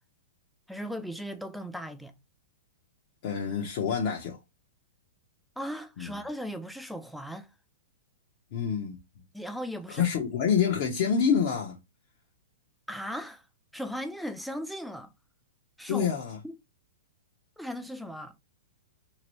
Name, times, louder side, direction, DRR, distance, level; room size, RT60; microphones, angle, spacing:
voice 1, 0.7-2.1 5.6-7.5 9.3-10.1 12.9-13.4 13.7-15.1 15.8-16.1 16.4-16.6 17.6-18.3, equal, ahead, 0.3 m, -37 dB
voice 2, 3.2-4.4 6.0-6.1 8.5-9.0 9.9-11.8 15.9-16.4, left 7 dB, 50° left, 0.8 m, -27 dB
2.9 x 2.5 x 3.0 m
hypercardioid pair, 145°, 0 cm